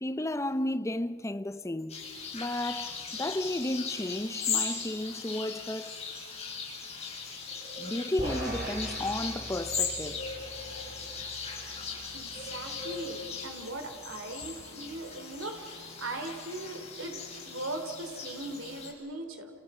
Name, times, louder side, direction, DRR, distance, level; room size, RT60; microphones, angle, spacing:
voice 1, 0.0-2.0 2.3-6.0 7.8-10.2, left 1 dB, 15° left, 0.6 m, -33 dB
sound 1, 1.9-18.9, left 5 dB, 30° left, 5.9 m, -38 dB
sound 2, 8.2-14.6, right 1 dB, 45° right, 3.7 m, -42 dB
voice 2, 12.1-19.5, right 2 dB, 70° right, 3.1 m, -39 dB
30.0 x 29.0 x 5.5 m
head